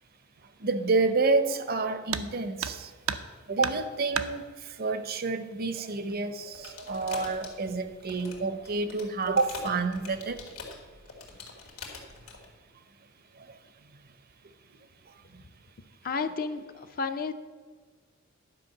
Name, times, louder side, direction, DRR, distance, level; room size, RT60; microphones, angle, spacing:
voice 1, 0.6-2.9 3.5-4.4 4.8-10.4, right 3 dB, 45° right, 11 dB, 0.7 m, -28 dB
sound 1, 2.1-2.3 2.6-3.3 3.6-4.3 5.5-5.6 6.1-6.2 6.9-7.3 7.7-8.1, right 7 dB, 85° right, 0.6 m, -33 dB
sound 2, 6.5-12.5, left 4 dB, 80° left, 2.0 m, -45 dB
voice 2, 16.0-17.3, left 4 dB, 45° left, 9 dB, 0.5 m, -32 dB
11.0 x 5.2 x 7.2 m, 1.5 s
head